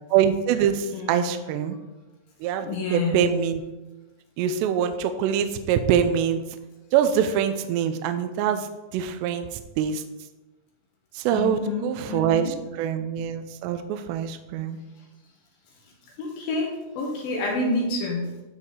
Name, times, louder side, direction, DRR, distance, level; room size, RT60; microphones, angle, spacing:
voice 1, 0.1-1.8 2.4-3.6 4.4-6.4 6.9-10.0 11.2-14.8, right 8 dB, 80° right, 8 dB, 2.5 m, -24 dB
voice 2, 0.9-1.3 2.6-3.3 11.3-12.5 16.2-18.3, left 2 dB, 65° left, -1 dB, 2.5 m, -28 dB
13.0 x 4.7 x 3.8 m, 1.1 s
omnidirectional pair, 5.4 m